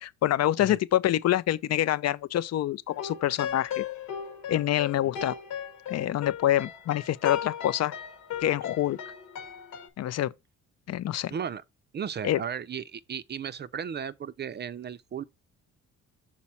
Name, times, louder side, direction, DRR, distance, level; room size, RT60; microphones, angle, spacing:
voice 1, 0.0-3.8 4.5-5.4 5.9-7.9 8.4-9.0 10.0-10.3 10.9-11.3 12.2-12.4, left 12 dB, 60° left, 0.5 m, -26 dB
sound 1, 2.9-9.9, left 9 dB, 90° left, 1.4 m, -37 dB
voice 2, 11.3-11.6 11.9-15.2, right 7 dB, 35° right, 0.4 m, -35 dB
6.0 x 4.1 x 4.2 m
cardioid pair, 90°, 30 cm